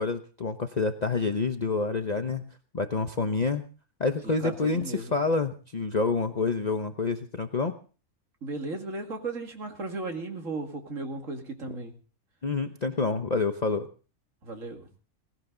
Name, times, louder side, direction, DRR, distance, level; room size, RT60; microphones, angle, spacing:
voice 1, 0.0-2.5 2.7-3.6 4.0-7.7 12.4-13.9, left 4 dB, 35° left, 6 dB, 0.9 m, -28 dB
voice 2, 4.2-5.2 8.4-11.9 14.4-14.9, right 3 dB, 65° right, 3 dB, 2.7 m, -35 dB
18.5 x 17.5 x 3.9 m, 0.37 s
omnidirectional pair, 1.5 m